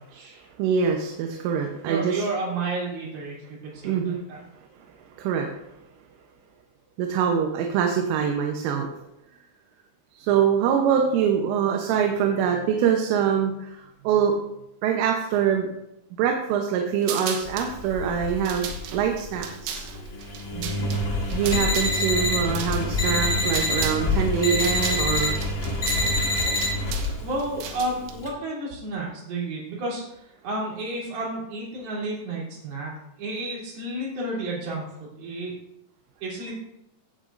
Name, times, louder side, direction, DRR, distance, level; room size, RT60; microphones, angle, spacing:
voice 1, 0.0-0.4 1.8-4.4 20.5-20.8 27.2-35.6 36.2-36.6, right 2 dB, 55° right, -4 dB, 4.8 m, -32 dB
voice 2, 0.6-2.2 3.9-4.2 5.2-5.5 7.0-8.9 10.2-14.3 14.8-15.7 16.2-19.9 21.3-25.4, right 7 dB, 90° right, 2 dB, 3.5 m, -24 dB
sound 1, 17.0-17.7 18.3-24.1 24.3-28.1, right 8 dB, 75° right, 2.9 m, -36 dB
Engine, 17.4-28.3, left 2 dB, 65° left, 1.2 m, -30 dB
sound 2, 21.5-22.4 23.0-23.8 24.4-25.3 25.8-26.7, left 2 dB, 40° left, 1.0 m, -25 dB
16.0 x 9.0 x 2.6 m, 0.85 s
omnidirectional pair, 5.6 m